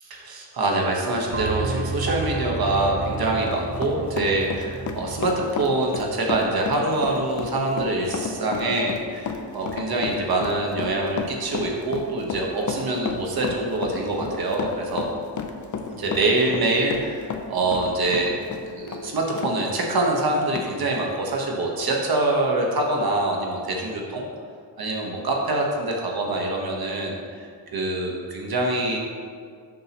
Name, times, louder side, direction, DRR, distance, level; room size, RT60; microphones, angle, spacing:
voice 1, 0.2-15.1 15.9-18.4 18.8-24.2 24.8-29.0, right 2 dB, 55° right, 0 dB, 1.2 m, -25 dB
sound 1, 1.3-5.5, right 3 dB, 25° right, 0.5 m, -31 dB
Run, 2.9-19.6 19.9-20.0 20.6-20.7, left 5 dB, 45° left, 0.6 m, -32 dB
7.6 x 5.5 x 3.0 m, 2.1 s
cardioid pair, 90°, 44 cm